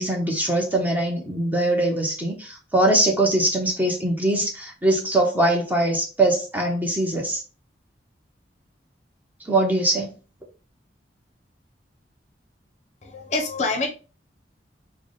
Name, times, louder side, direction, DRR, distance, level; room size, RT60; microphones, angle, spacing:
voice 1, 0.0-7.4 9.4-10.1, right 1 dB, 10° right, 0.7 m, -22 dB
voice 2, 13.0-13.9, left 3 dB, 40° left, 0.6 m, -26 dB
3.4 x 2.1 x 3.8 m
head